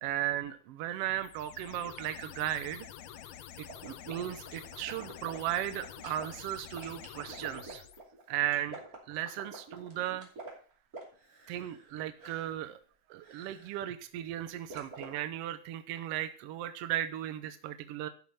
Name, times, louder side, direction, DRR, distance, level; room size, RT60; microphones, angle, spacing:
voice 1, 0.0-2.9 3.6-7.8 8.3-8.8 9.1-10.3 11.5-12.8 13.1-18.1, right 12 dB, 75° right, 10 dB, 1.4 m, -36 dB
sound 1, 1.2-8.0, left 10 dB, 70° left, 2.0 m, -48 dB
sound 2, 3.7-6.3 6.7-11.9 12.2-12.6 13.2-13.8 14.7-15.1, right 3 dB, 30° right, 3.1 m, -47 dB
12.5 x 6.6 x 5.6 m, 0.42 s
omnidirectional pair, 3.4 m